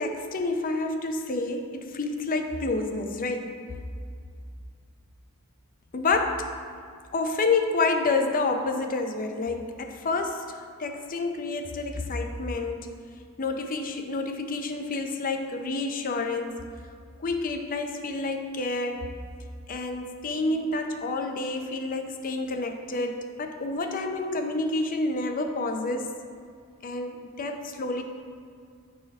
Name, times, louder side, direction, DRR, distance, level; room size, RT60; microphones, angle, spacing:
voice 1, 0.0-3.5 5.9-6.5 7.1-12.8 13.4-16.6 17.2-19.0 19.7-26.1 26.8-28.0, left 3 dB, 40° left, 5 dB, 0.5 m, -29 dB
10.0 x 4.2 x 3.5 m, 2.2 s
head